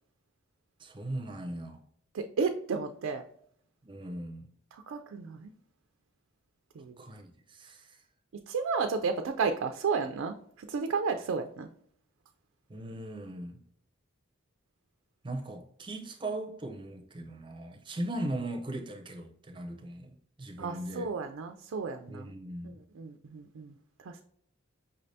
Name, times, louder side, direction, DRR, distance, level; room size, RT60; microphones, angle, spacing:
voice 1, 0.8-1.8 3.8-4.5 7.0-8.0 12.7-13.6 15.2-21.1 22.1-22.8, right 1 dB, 25° right, 0.6 m, -39 dB
voice 2, 2.1-3.2 4.7-5.5 6.8-7.0 8.5-11.7 20.6-22.3 22.6-23.7 24.0-24.2, right 5 dB, 70° right, 0.4 m, -33 dB
5.6 x 3.3 x 2.7 m
head